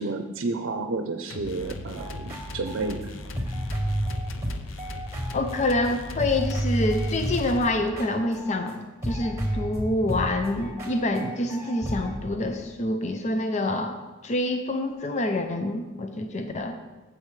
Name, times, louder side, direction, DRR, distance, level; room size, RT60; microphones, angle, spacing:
voice 1, 0.0-3.0, right 3 dB, 75° right, 5 dB, 0.6 m, -31 dB
sound 1, 1.3-8.0, left 2 dB, 80° left, 0.6 m, -39 dB
sound 2, 2.0-5.9 6.2-8.8 9.0-12.1, equal, 15° right, 3.1 m, -31 dB
voice 2, 5.3-16.7, left 1 dB, 35° left, 6 dB, 0.5 m, -27 dB
12.0 x 7.8 x 3.2 m, 1.2 s
head